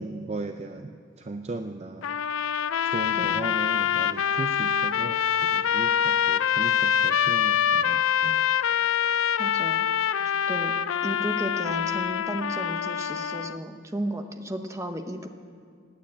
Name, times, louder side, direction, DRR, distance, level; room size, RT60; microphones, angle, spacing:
voice 1, 0.0-2.1 2.8-8.4, right 2 dB, 30° right, 7 dB, 0.5 m, -37 dB
sound 1, 2.0-13.6, left 9 dB, 85° left, 0.4 m, -25 dB
voice 2, 9.4-9.9 10.5-10.7 11.0-15.3, right 1 dB, 15° right, 6 dB, 0.9 m, -34 dB
17.0 x 9.3 x 8.6 m, 2.2 s
head